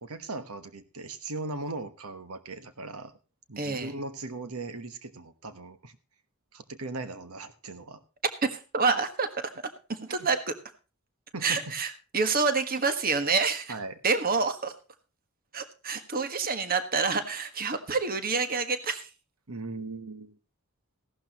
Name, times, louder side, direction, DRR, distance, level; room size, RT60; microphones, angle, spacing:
voice 1, 0.0-3.1 3.5-6.0 6.5-8.0 10.1-10.3 11.3-11.7 13.7-14.0 19.5-20.3, right 2 dB, 80° right, 11 dB, 1.3 m, -38 dB
voice 2, 3.6-3.9 8.5-9.3 9.9-10.4 11.4-13.7 14.0-14.7 15.5-19.1, right 4 dB, 40° right, 9 dB, 1.5 m, -27 dB
16.0 x 12.0 x 3.0 m, 0.32 s
head